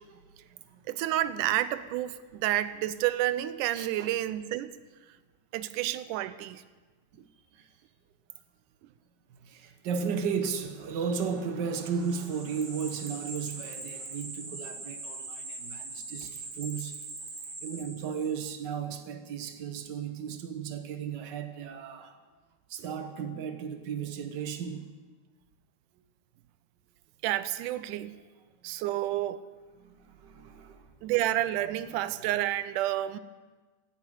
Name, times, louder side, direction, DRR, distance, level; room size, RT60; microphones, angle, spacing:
voice 1, 0.1-0.8 3.7-4.1 7.5-7.7 8.3-8.4 9.4-17.0 17.6-22.1 22.7-24.9 28.0-28.1 29.8-30.8, right 6 dB, 75° right, 1.0 m, -35 dB
voice 2, 0.9-4.7 5.5-6.6 27.2-28.2 28.6-29.4 31.0-33.2, right 14 dB, 90° right, 2.2 m, -30 dB
sound 1, 11.9-18.4, right 2 dB, 40° right, 4.0 m, -41 dB
16.5 x 10.0 x 8.0 m
omnidirectional pair, 3.6 m